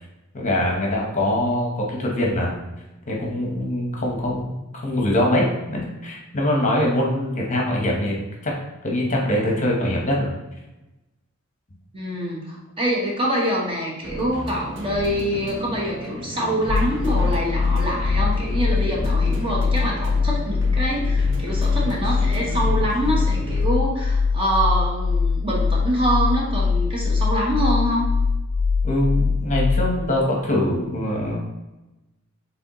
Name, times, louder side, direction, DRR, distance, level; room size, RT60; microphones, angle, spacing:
voice 1, 0.3-2.6 3.1-4.6 4.8-8.5 8.8-10.3 28.8-31.4, left 1 dB, 35° left, -1 dB, 1.0 m, -23 dB
voice 2, 11.9-28.0, equal, 25° right, -3 dB, 0.9 m, -25 dB
sound 1, 14.0-23.6, equal, 60° right, 1.1 m, -34 dB
sound 2, 16.7-30.0, left 4 dB, 65° left, 0.3 m, -22 dB
4.9 x 3.5 x 3.0 m, 1.0 s
head